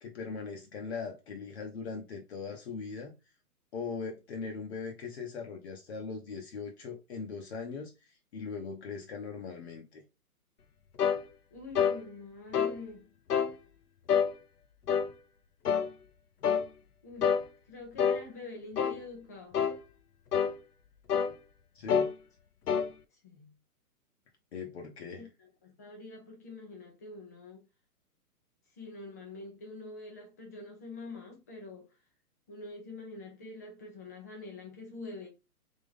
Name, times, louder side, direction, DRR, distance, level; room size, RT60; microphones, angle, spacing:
voice 1, 0.0-3.1 3.7-10.0 21.7-22.1 24.5-25.3, left 5 dB, 45° left, 0.8 m, -40 dB
sound 1, 11.0-11.2 11.8-12.0 12.5-12.8 13.3-13.5 14.1-14.3 14.9-15.1 15.7-15.9 16.4-16.7 17.2-17.5 18.0-18.2 18.8-19.0 19.5-19.8 20.3-20.5 21.1-21.3 21.9-22.1 22.7-22.9, left 7 dB, 80° left, 0.8 m, -27 dB
voice 2, 11.5-13.1 17.0-17.4 17.7-19.6 23.2-23.5 25.2-27.6 28.8-31.9 32.5-35.3, left 3 dB, 10° left, 0.4 m, -45 dB
3.5 x 2.9 x 3.6 m
hypercardioid pair, 140°, 46 cm